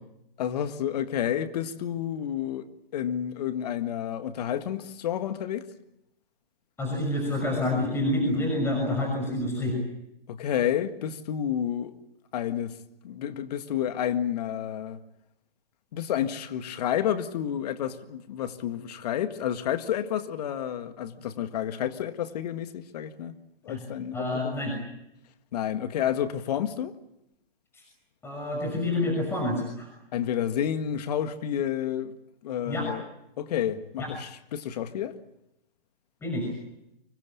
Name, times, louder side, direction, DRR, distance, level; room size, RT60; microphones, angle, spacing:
voice 1, 0.4-5.7 10.3-11.9 12.3-12.8 13.0-15.0 15.9-23.4 23.6-24.3 25.5-26.9 30.1-32.2 32.4-33.1 33.4-35.2, left 10 dB, 45° left, 1.8 m, -30 dB
voice 2, 6.8-9.8 23.7-23.8 24.1-24.8 27.7-27.8 28.2-29.9 32.6-32.9 34.0-34.1 36.2-36.5, left 1 dB, 10° left, 6.0 m, -28 dB
25.0 x 21.5 x 8.6 m
hypercardioid pair, 135°, 29 cm